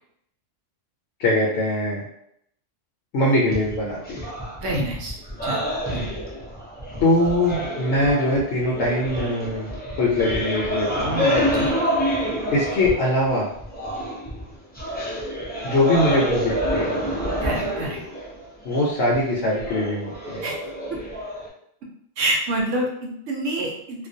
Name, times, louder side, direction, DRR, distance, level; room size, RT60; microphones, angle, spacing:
voice 1, 1.2-2.0 3.1-4.2 7.0-9.7 10.0-11.6 12.5-13.5 15.6-17.0 18.6-20.4, left 1 dB, 70° left, -4 dB, 0.8 m, -22 dB
sound 1, 3.5-13.3 13.6-21.5, equal, 15° left, 0.3 m, -28 dB
voice 2, 4.6-5.2 5.4-5.6 5.9-6.0 11.6-11.7 17.4-18.0 20.4-20.5 22.2-24.1, right 1 dB, 80° right, -1 dB, 1.0 m, -26 dB
2.4 x 2.2 x 2.6 m, 0.75 s
omnidirectional pair, 1.3 m